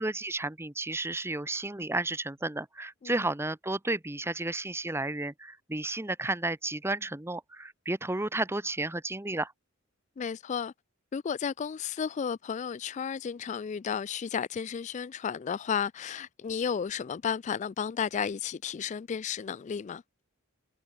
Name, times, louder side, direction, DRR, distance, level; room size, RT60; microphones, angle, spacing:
voice 1, 0.0-9.5, right 2 dB, 10° right, 0.9 m, -32 dB
voice 2, 10.2-10.7 11.1-20.0, left 7 dB, 35° left, 0.3 m, -33 dB
head